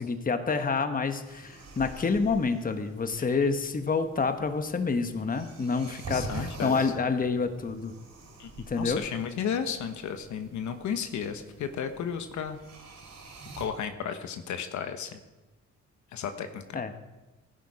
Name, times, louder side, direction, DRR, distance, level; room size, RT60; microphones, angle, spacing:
voice 1, 0.0-7.9 8.6-9.0 16.7-16.9, left 4 dB, 30° left, 8 dB, 1.2 m, -28 dB
sound 1, 1.2-13.7, right 2 dB, 65° right, 3.8 m, -45 dB
voice 2, 5.7-6.9 8.4-8.5 8.8-12.6 13.6-15.2 16.1-16.8, left 7 dB, 70° left, 8 dB, 1.1 m, -34 dB
15.5 x 11.0 x 4.9 m, 1.1 s
cardioid pair, 90°, 30 cm